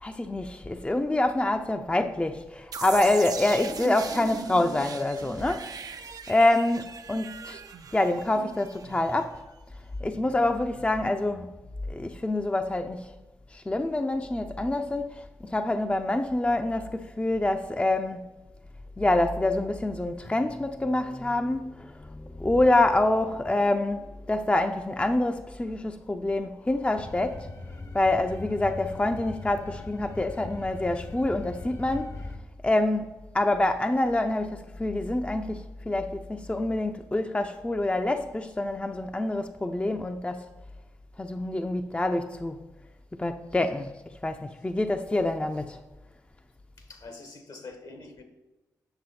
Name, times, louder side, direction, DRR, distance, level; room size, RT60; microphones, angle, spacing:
voice 1, 0.0-5.7 6.3-7.6 7.9-9.4 10.0-11.5 11.9-13.1 13.5-18.3 19.0-27.5 27.9-32.1 32.6-40.4 41.2-42.6 43.1-43.9 44.2-45.8, left 2 dB, 15° left, 0.5 m, -26 dB
sound 1, 2.7-9.5, right 5 dB, 60° right, 0.5 m, -39 dB
voice 2, 26.6-27.0 46.8-48.2, left 3 dB, 65° left, 1.3 m, -46 dB
sound 2, 27.0-32.4, left 3 dB, 45° left, 0.9 m, -41 dB
7.9 x 6.1 x 4.2 m
supercardioid pair, 40°, 7 cm